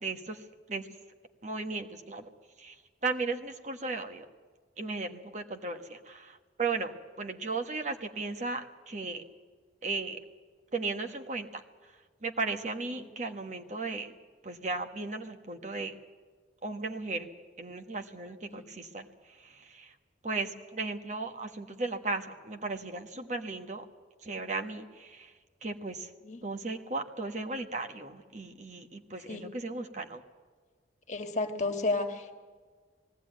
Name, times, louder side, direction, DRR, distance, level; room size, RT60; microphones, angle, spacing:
voice 1, 0.0-0.9 1.4-2.3 2.6-4.3 4.8-9.2 9.8-10.2 10.7-14.1 14.4-16.0 16.6-17.3 17.6-19.9 20.2-23.8 24.2-25.3 25.6-26.1 26.4-30.2, right 3 dB, 40° right, 5 dB, 1.3 m, -36 dB
voice 2, 31.1-32.3, left 2 dB, 40° left, 6 dB, 1.7 m, -32 dB
19.0 x 17.0 x 9.3 m, 1.5 s
head